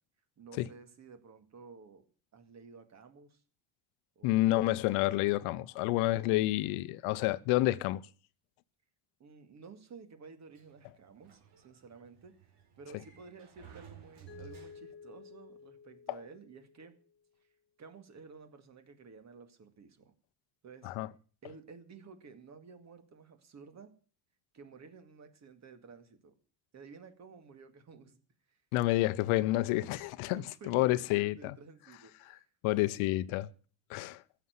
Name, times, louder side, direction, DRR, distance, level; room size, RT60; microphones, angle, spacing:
voice 1, 0.4-2.0 2.3-3.4 4.2-4.6 9.2-17.0 17.8-20.1 20.6-20.9 21.4-23.9 24.5-26.4 26.7-28.2 28.5-28.6 30.3-32.5, right 5 dB, 35° right, 2.2 m, -53 dB
voice 2, 4.2-8.0 20.8-21.1 28.7-31.5 32.6-33.5 33.9-34.2, left 17 dB, 85° left, 0.9 m, -29 dB
Sliding door, 10.5-15.2, right 9 dB, 55° right, 4.4 m, -56 dB
Mallet percussion, 14.3-17.2, left 6 dB, 20° left, 2.0 m, -53 dB
15.0 x 7.2 x 9.6 m
cardioid pair, 150°, 49 cm